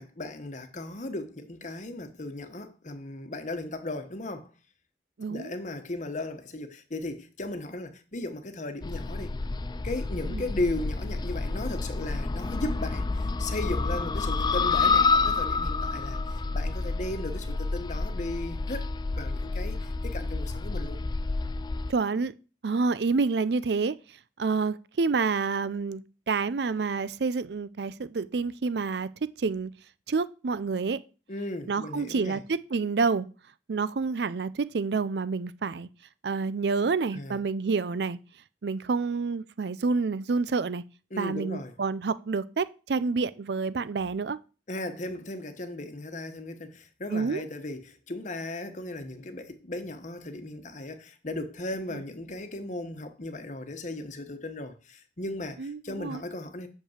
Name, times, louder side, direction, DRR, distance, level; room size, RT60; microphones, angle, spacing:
voice 1, 0.0-4.5 5.3-9.3 9.8-18.9 19.1-21.0 31.3-32.4 37.1-37.4 41.1-41.7 44.7-56.7, left 2 dB, 45° left, 1.1 m, -36 dB
voice 2, 5.2-5.5 10.3-10.5 21.9-22.3 22.6-24.0 24.4-29.1 29.4-29.7 30.1-31.0 31.7-33.3 33.7-35.9 36.2-38.2 38.6-40.8 41.2-44.4 47.1-47.4 51.9-52.0 55.6-56.2, right 4 dB, 65° right, 0.5 m, -28 dB
sound 1, 8.8-21.9, left 3 dB, 25° left, 0.3 m, -29 dB
6.7 x 5.4 x 7.3 m
head